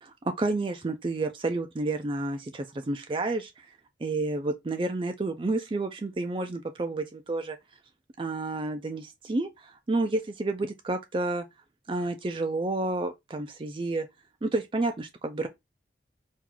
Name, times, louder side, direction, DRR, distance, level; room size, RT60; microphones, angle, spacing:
voice 1, 0.0-3.7 4.0-7.6 8.2-11.5 11.9-14.1 14.4-15.5, right 2 dB, 30° right, 0.4 m, -30 dB
4.4 x 2.4 x 3.8 m
head